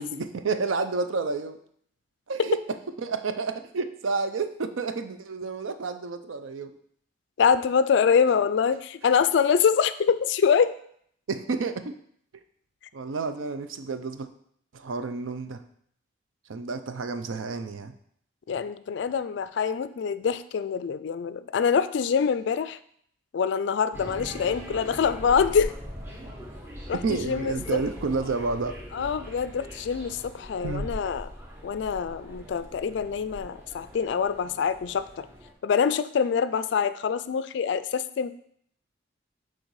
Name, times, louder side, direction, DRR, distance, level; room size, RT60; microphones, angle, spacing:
voice 1, 0.0-1.6 2.3-2.6 3.0-6.7 11.3-11.9 12.9-14.3 14.7-15.6 16.5-17.9 27.0-28.8 30.6-30.9, right 4 dB, 80° right, 10 dB, 0.5 m, -30 dB
voice 2, 7.4-10.7 18.5-22.8 23.3-25.7 26.9-27.8 28.9-31.3 31.6-35.3 35.6-38.3, left 6 dB, 60° left, 13 dB, 0.3 m, -25 dB
sound 1, 23.9-35.5, equal, 10° right, 0.8 m, -41 dB
6.4 x 3.8 x 4.7 m, 0.66 s
head